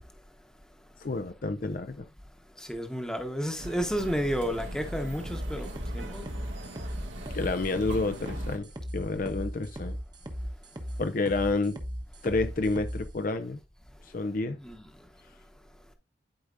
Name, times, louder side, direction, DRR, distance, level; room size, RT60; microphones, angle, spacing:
voice 1, 1.0-2.1 7.3-8.7 8.9-10.0 11.0-11.8 12.2-13.6 14.1-14.6, left 3 dB, 45° left, 0.5 m, -29 dB
voice 2, 2.6-6.3 14.5-14.9, equal, 5° left, 1.0 m, -32 dB
sound 1, 3.6-8.6, equal, 85° right, 2.1 m, -39 dB
sound 2, 5.3-13.0, equal, 20° right, 1.0 m, -37 dB
11.5 x 4.9 x 2.6 m
head